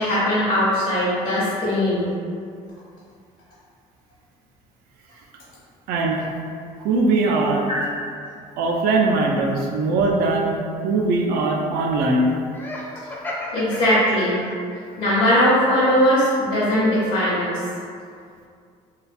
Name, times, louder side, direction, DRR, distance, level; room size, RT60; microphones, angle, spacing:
voice 1, 0.0-2.1 13.5-14.4 15.0-17.6, equal, 60° left, -10 dB, 0.7 m, -19 dB
voice 2, 5.9-6.3 6.8-7.7 8.6-10.6 10.8-12.3, right 3 dB, 75° right, 0 dB, 0.4 m, -20 dB
Laughter, 12.5-14.8, left 1 dB, 15° left, 0.4 m, -33 dB
2.4 x 2.2 x 2.4 m, 2.3 s
supercardioid pair, 85°, 15 cm